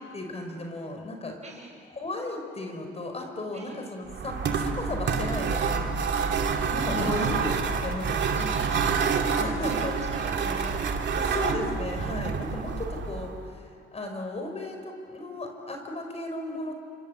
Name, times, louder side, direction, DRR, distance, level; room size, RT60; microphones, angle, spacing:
voice 1, 0.1-1.4 2.0-5.9 6.7-8.5 9.3-9.9 11.2-16.8, left 1 dB, 30° left, 3 dB, 4.9 m, -34 dB
voice 2, 1.4-1.8 3.5-3.8 6.9-7.4 8.3-11.5, right 2 dB, 35° right, 1 dB, 7.1 m, -43 dB
sound 1, 4.1-13.5, right 5 dB, 65° right, 2.5 m, -28 dB
28.5 x 25.0 x 8.0 m, 2.3 s
cardioid pair, 90°, 20 cm